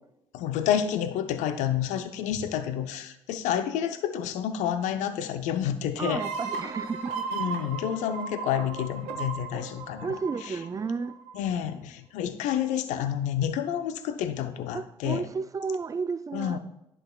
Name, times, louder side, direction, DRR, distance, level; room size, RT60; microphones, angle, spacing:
voice 1, 0.3-6.2 7.3-10.1 10.5-10.6 11.3-15.3 16.3-16.6, left 9 dB, 70° left, 0.6 m, -29 dB
voice 2, 6.0-7.3 10.0-11.2 14.7-16.6, right 5 dB, 25° right, 0.4 m, -32 dB
sound 1, 6.1-11.6, right 5 dB, 80° right, 0.8 m, -36 dB
10.5 x 6.1 x 2.3 m
hypercardioid pair, 50°, 13 cm